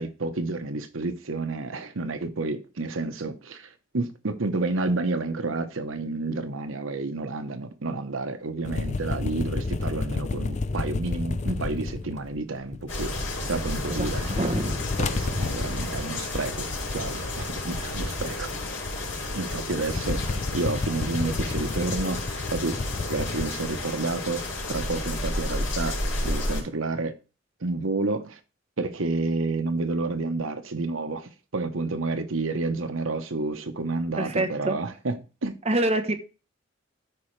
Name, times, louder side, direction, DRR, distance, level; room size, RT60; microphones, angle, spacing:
voice 1, 0.0-14.3 15.0-16.7 16.9-18.5 19.3-20.2 20.5-22.8 23.1-24.4 24.7-27.2 27.6-28.4 28.8-35.2 35.4-35.5, right 3 dB, 85° right, 0.9 m, -30 dB
sound 1, 8.6-13.4 13.7-23.4, left 3 dB, 35° left, 0.4 m, -31 dB
sound 2, 12.9-26.6, left 2 dB, 85° left, 4.2 m, -32 dB
voice 2, 13.9-14.8 34.2-34.8 35.6-36.1, right 1 dB, 30° right, 0.9 m, -26 dB
13.0 x 4.9 x 3.2 m
head